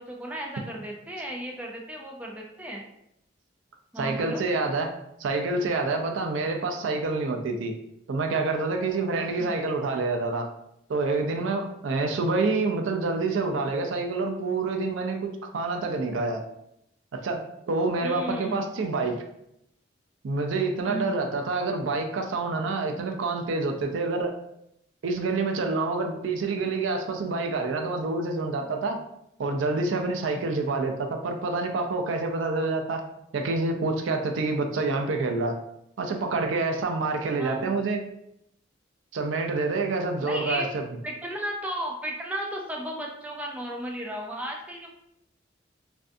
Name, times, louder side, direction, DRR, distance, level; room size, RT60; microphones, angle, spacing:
voice 1, 0.0-2.8 3.9-4.4 9.3-9.6 18.0-18.7 20.9-21.2 37.4-37.8 40.2-40.7 41.0-44.9, equal, 5° right, -1 dB, 0.3 m, -34 dB
voice 2, 4.0-4.9 5.2-7.7 8.1-10.5 10.9-16.4 17.1-17.4 17.7-19.2 20.2-24.3 25.0-29.0 29.4-33.0 33.3-35.5 36.0-38.0 39.1-40.8, right 3 dB, 90° right, 4 dB, 0.4 m, -27 dB
2.5 x 2.2 x 2.5 m, 0.78 s
head